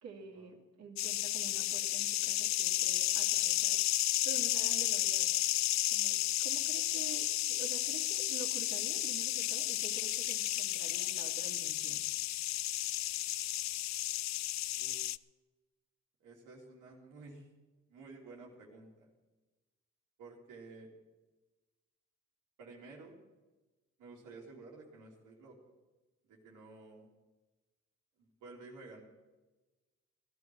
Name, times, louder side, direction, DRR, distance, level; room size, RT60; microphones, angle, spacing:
voice 1, 0.0-3.8 4.2-5.3 5.9-12.0, right 5 dB, 60° right, 1 dB, 2.7 m, -48 dB
sound 1, 1.0-15.2, left 15 dB, 65° left, 0.4 m, -32 dB
voice 2, 13.6-14.0 14.8-14.9 16.2-17.5 17.9-19.1 20.2-20.9 22.6-23.2 24.0-25.6 26.3-27.1 28.2-29.0, right 3 dB, 85° right, -3 dB, 2.9 m, -52 dB
16.0 x 11.0 x 6.2 m, 1.2 s
cardioid pair, 90°, 30 cm